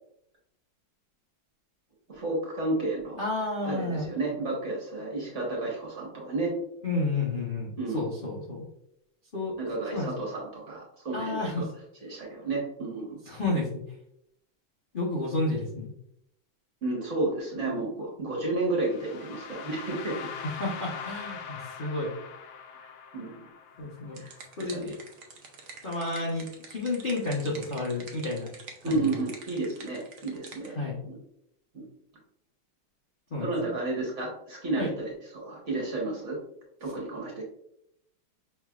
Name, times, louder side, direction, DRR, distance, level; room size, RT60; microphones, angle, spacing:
voice 1, 2.1-3.2 3.6-6.5 7.8-8.1 9.6-11.6 12.0-13.2 16.8-20.3 22.8-23.5 24.2-24.8 28.8-30.8 31.0-31.2 31.7-31.8 33.4-36.4 36.8-37.4, right 2 dB, 45° right, -3 dB, 1.2 m, -32 dB
voice 2, 3.2-4.1 6.8-8.6 9.3-9.5 9.9-10.1 11.1-11.7 13.3-13.8 14.9-15.9 20.6-22.1 23.8-24.2 24.6-25.0 25.8-28.5 28.8-29.2 30.7-31.0 33.3-33.7 34.8-34.9, left 2 dB, 45° left, -4 dB, 0.6 m, -31 dB
sound 1, 18.8-24.7, left 6 dB, 75° left, 1.3 m, -42 dB
sound 2, 23.8-30.7, right 4 dB, 65° right, 0.7 m, -47 dB
5.4 x 3.2 x 2.4 m, 0.75 s
omnidirectional pair, 2.1 m